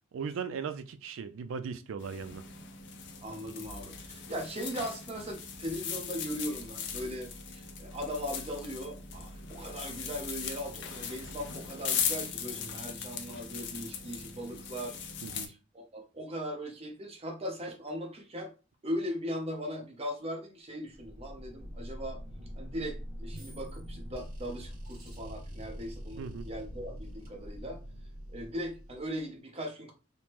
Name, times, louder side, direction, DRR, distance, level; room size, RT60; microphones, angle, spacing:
voice 1, 0.1-2.4 15.2-15.5 26.2-26.5, right 6 dB, 75° right, 0.3 m, -38 dB
sound 1, 2.0-15.5, left 7 dB, 60° left, 0.5 m, -39 dB
voice 2, 3.2-15.0 15.4-18.5 18.8-22.2 22.6-27.8 28.3-29.9, equal, 30° right, 0.7 m, -39 dB
sound 2, 20.9-29.4, equal, 45° right, 1.7 m, -44 dB
3.5 x 2.0 x 2.9 m
head